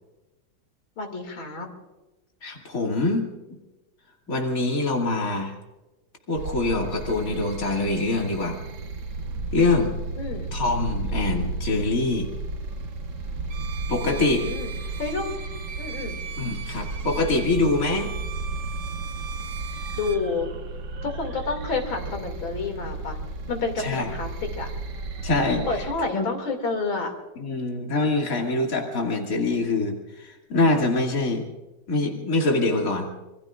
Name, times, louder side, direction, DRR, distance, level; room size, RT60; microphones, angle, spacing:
voice 1, 1.0-1.7 10.2-10.5 14.1-14.7 15.0-15.3 15.8-16.2 20.0-20.5 21.0-23.2 23.5-24.7 25.7-27.1, left 4 dB, 70° left, 4 dB, 3.3 m, -29 dB
voice 2, 2.4-3.3 4.3-5.5 6.3-8.6 9.5-9.9 10.5-12.3 13.9-14.5 16.4-18.1 23.8-24.1 25.2-25.7 26.1-26.3 27.4-31.4 31.9-33.1, left 2 dB, 40° left, 1 dB, 2.8 m, -24 dB
sound 1, 6.3-25.9, right 3 dB, 60° right, 1.8 m, -33 dB
Bowed string instrument, 13.5-20.3, right 7 dB, 90° right, 2.1 m, -39 dB
26.5 x 22.0 x 2.5 m, 1.1 s
omnidirectional pair, 2.2 m